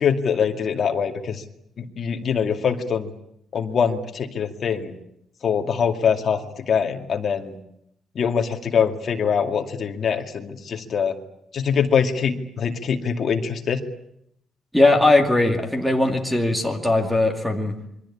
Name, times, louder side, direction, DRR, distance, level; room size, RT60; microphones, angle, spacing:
voice 1, 0.0-1.4 1.8-3.1 3.5-5.0 5.4-6.4 6.7-7.6 8.1-11.2 11.5-13.8, left 7 dB, 40° left, 5 dB, 2.3 m, -23 dB
voice 2, 14.7-17.8, left 2 dB, ahead, 5 dB, 2.2 m, -19 dB
27.5 x 23.5 x 8.6 m, 0.75 s
cardioid pair, 180°, 0 cm